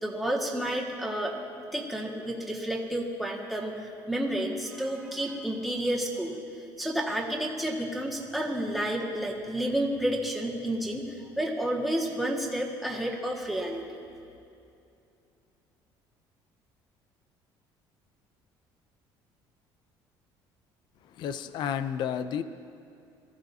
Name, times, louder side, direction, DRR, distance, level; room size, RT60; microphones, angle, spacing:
voice 1, 0.0-1.3 1.7-3.7 4.1-6.4 6.8-13.8, right 1 dB, ahead, -3 dB, 1.8 m, -30 dB
voice 2, 21.1-22.4, left 8 dB, 55° left, 12 dB, 0.5 m, -31 dB
23.0 x 14.5 x 2.8 m, 2.6 s
cardioid pair, 135°, 9 cm